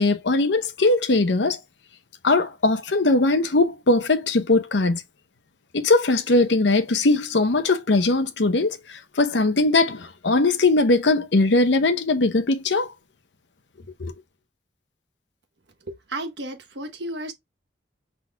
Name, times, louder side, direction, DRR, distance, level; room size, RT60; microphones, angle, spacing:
voice 1, 0.0-1.6 2.2-5.0 5.7-12.9 14.0-14.1, left 2 dB, 75° left, 0.8 m, -20 dB
voice 2, 15.9-17.3, right 1 dB, 70° right, 1.1 m, -33 dB
5.8 x 3.8 x 2.2 m
head